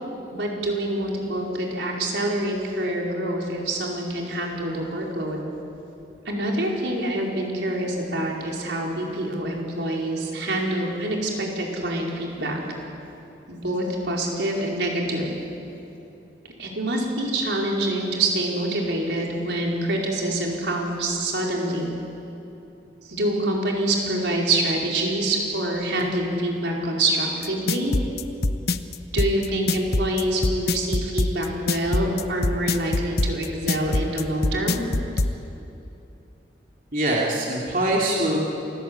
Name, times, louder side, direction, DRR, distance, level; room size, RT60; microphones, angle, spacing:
voice 1, 0.3-5.4 6.2-12.6 13.5-15.4 16.6-21.9 23.0-27.9 29.1-34.8, right 1 dB, 85° right, -1 dB, 4.8 m, -26 dB
sound 1, 27.4-35.3, left 2 dB, 60° left, 0.9 m, -23 dB
voice 2, 36.9-38.4, right 1 dB, 50° right, -3 dB, 3.4 m, -23 dB
28.5 x 19.5 x 9.0 m, 2.8 s
head